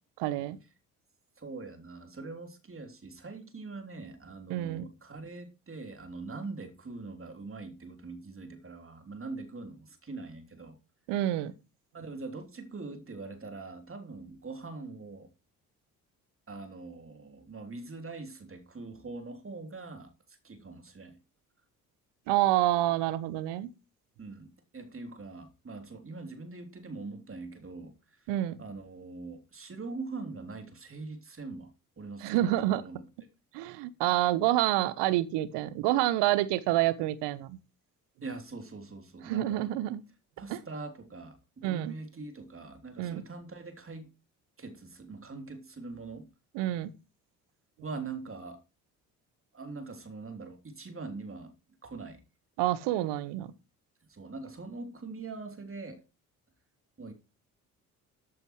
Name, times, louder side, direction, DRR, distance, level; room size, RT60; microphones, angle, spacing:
voice 1, 0.2-0.6 4.5-4.9 11.1-11.5 22.3-23.7 28.3-28.6 32.2-32.8 33.5-37.6 39.2-40.0 40.5-40.6 41.6-41.9 43.0-43.2 46.5-46.9 52.6-53.5, right 14 dB, 65° right, 1.3 m, -28 dB
voice 2, 1.4-10.8 11.9-15.3 16.5-21.2 24.2-28.3 28.6-33.0 38.2-39.7 40.4-44.1 44.6-46.3 47.8-48.6 49.5-51.5 51.8-52.2 54.1-56.0 57.0-57.1, right 3 dB, 30° right, 3.4 m, -43 dB
14.0 x 11.0 x 3.2 m
hypercardioid pair, 50°, 45 cm